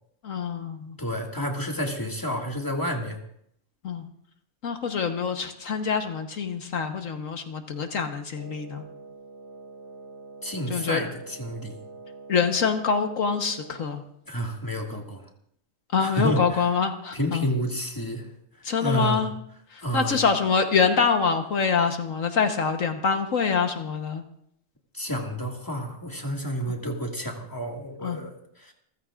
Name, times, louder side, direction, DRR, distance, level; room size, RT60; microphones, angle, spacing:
voice 1, 0.2-1.0 3.8-4.1 4.6-8.8 10.7-11.1 12.3-14.0 15.9-17.5 18.6-19.3 19.7-24.2 28.0-28.2, left 5 dB, 70° left, 5 dB, 1.5 m, -25 dB
voice 2, 1.0-3.2 10.4-11.8 14.3-15.3 16.0-16.7 17.1-18.3 18.8-19.2 19.8-20.2 24.9-28.7, equal, 15° left, 1 dB, 2.0 m, -30 dB
Wind instrument woodwind instrument, 8.3-14.0, right 3 dB, 55° left, 2.4 m, -45 dB
29.5 x 14.5 x 2.5 m, 0.71 s
omnidirectional pair, 1.4 m